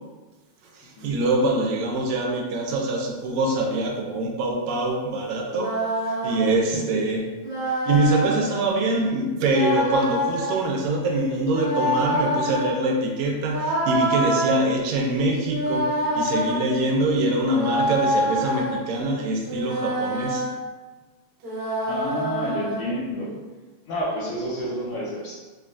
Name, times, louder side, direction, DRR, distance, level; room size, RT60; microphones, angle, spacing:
voice 1, 0.7-5.7 6.1-7.3 7.9-15.9 16.2-20.5, right 2 dB, 80° right, 0 dB, 1.8 m, -24 dB
sound 1, 5.4-6.5 7.4-8.4 9.4-10.7 11.4-12.7 13.5-14.5 15.4-16.6 17.4-18.8 19.4-20.5 21.4-22.8, equal, 55° right, 1.6 m, -26 dB
voice 2, 21.9-23.3 23.8-25.3, equal, 75° left, -7 dB, 1.5 m, -29 dB
5.5 x 2.2 x 2.5 m, 1.3 s
omnidirectional pair, 3.3 m